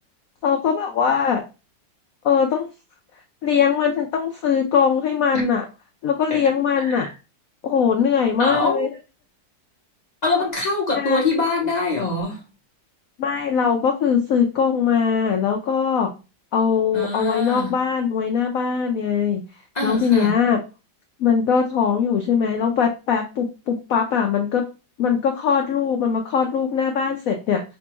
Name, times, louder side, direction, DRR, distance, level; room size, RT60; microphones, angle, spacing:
voice 1, 0.4-1.4 2.2-2.7 3.4-5.6 6.0-7.1 7.6-8.9 10.9-11.2 13.2-16.1 16.5-19.4 19.8-20.6 21.2-24.7 25.0-27.6, left 7 dB, 85° left, 0.7 m, -21 dB
voice 2, 6.8-7.1 8.4-8.9 10.2-12.4 16.9-17.7 19.7-20.3, left 3 dB, 35° left, 0.7 m, -24 dB
5.9 x 2.2 x 2.9 m
omnidirectional pair, 2.1 m